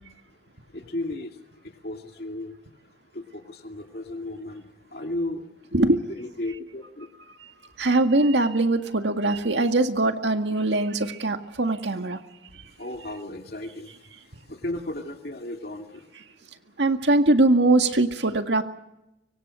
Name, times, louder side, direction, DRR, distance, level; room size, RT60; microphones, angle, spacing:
voice 1, 0.7-1.3 1.8-2.5 3.1-4.7 4.9-5.4 6.1-7.1 10.7-10.8 12.8-13.9 14.5-16.0, left 1 dB, 60° left, 3 dB, 2.4 m, -34 dB
voice 2, 7.8-12.2 16.8-18.6, right 2 dB, 85° right, 6 dB, 2.0 m, -21 dB
24.5 x 24.5 x 6.4 m, 0.89 s
head